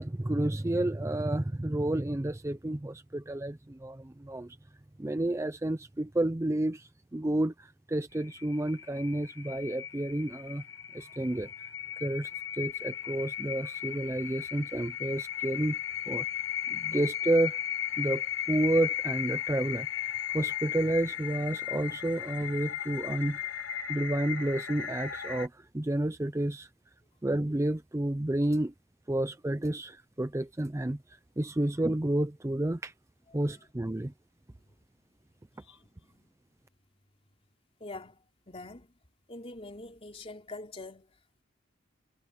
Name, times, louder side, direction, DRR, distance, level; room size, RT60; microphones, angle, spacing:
voice 1, 0.0-4.6 5.0-10.6 10.9-11.5 12.0-15.8 16.1-16.2 16.7-17.6 18.0-18.2 18.5-19.9 20.3-23.4 23.9-26.7 27.2-28.7 29.1-31.0 31.4-32.9 33.3-34.1, right 1 dB, 15° right, 0.5 m, -30 dB
sound 1, 8.1-25.5, left 10 dB, 80° left, 4.6 m, -36 dB
voice 2, 35.6-36.3 37.8-39.0 39.3-41.4, left 2 dB, 30° left, 3.4 m, -46 dB
head